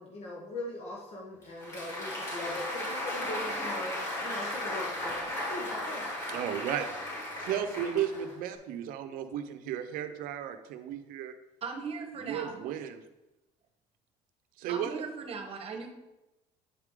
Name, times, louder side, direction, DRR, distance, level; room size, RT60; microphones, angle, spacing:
voice 1, 0.0-6.2, left 1 dB, 45° left, -2 dB, 1.2 m, -40 dB
Applause, 1.4-8.5, left 1 dB, 20° left, 2.6 m, -36 dB
voice 2, 6.3-6.9 7.4-11.3 12.2-13.0 14.6-15.0, right 9 dB, 70° right, 9 dB, 0.7 m, -34 dB
voice 3, 11.6-12.6 14.7-15.9, right 5 dB, 40° right, 5 dB, 1.1 m, -38 dB
8.5 x 4.8 x 3.7 m, 0.99 s
cardioid pair, 110°, 15 cm